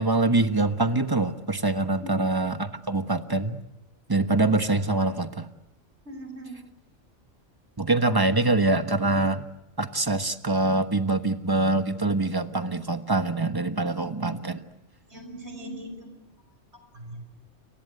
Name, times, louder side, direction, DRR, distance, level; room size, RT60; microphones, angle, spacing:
voice 1, 0.0-3.6 4.1-5.4 7.8-9.5 9.8-14.6, right 2 dB, 20° right, 9 dB, 1.2 m, -24 dB
voice 2, 6.0-6.6 15.1-16.2 16.9-17.3, right 1 dB, 65° right, 6 dB, 6.3 m, -40 dB
29.0 x 23.5 x 8.0 m, 0.89 s
omnidirectional pair, 1.2 m